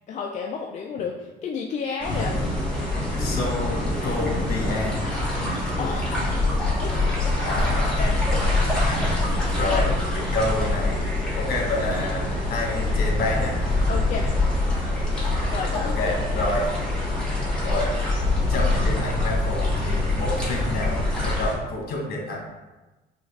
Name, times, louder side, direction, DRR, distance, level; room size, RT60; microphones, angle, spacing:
voice 1, 0.1-2.3 5.8-6.3 6.8-7.3 8.0-8.2 9.6-9.9 13.9-14.3 15.5-16.1, left 5 dB, 45° left, 0 dB, 0.4 m, -31 dB
sound 1, 2.0-21.5, left 2 dB, 5° left, 1.4 m, -24 dB
voice 2, 2.1-2.5 3.0-5.0 6.9-7.1 7.4-8.0 8.9-9.1 9.4-11.0 11.3-13.5 16.0-16.7 17.6-17.9 18.5-22.6, left 2 dB, 65° left, -1 dB, 1.3 m, -29 dB
5.2 x 2.4 x 3.3 m, 1.1 s
cardioid pair, 110°, 17 cm